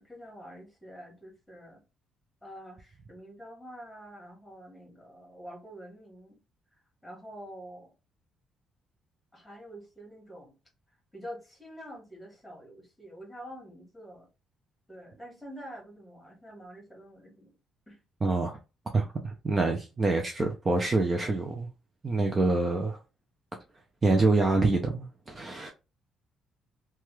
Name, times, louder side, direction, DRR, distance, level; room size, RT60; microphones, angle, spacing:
voice 1, 0.0-1.8 2.4-6.4 6.7-7.9 9.3-10.5 11.1-14.3 14.9-17.6 17.9-18.0, equal, 5° left, 1.6 m, -47 dB
voice 2, 18.2-18.6 18.9-21.7 22.0-23.0 24.0-25.7, right 3 dB, 25° right, 0.5 m, -26 dB
2.9 x 2.3 x 3.0 m
cardioid pair, 115°, 0 cm